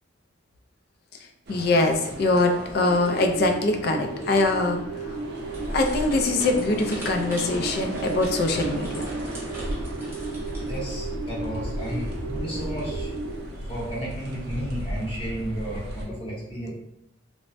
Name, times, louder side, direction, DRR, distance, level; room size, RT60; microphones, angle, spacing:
voice 1, 1.5-5.2 5.7-9.1 16.1-16.3, left 2 dB, 50° left, 5 dB, 0.3 m, -23 dB
sound 1, 1.5-16.0, right 1 dB, 50° right, 0.5 m, -36 dB
sound 2, 2.8-13.4, right 3 dB, 75° right, 0.9 m, -35 dB
sound 3, 5.5-10.8, equal, 10° right, 0.7 m, -38 dB
voice 2, 10.6-13.1 13.6-16.7, equal, 25° left, -5 dB, 0.7 m, -33 dB
3.2 x 2.0 x 2.5 m, 0.83 s
head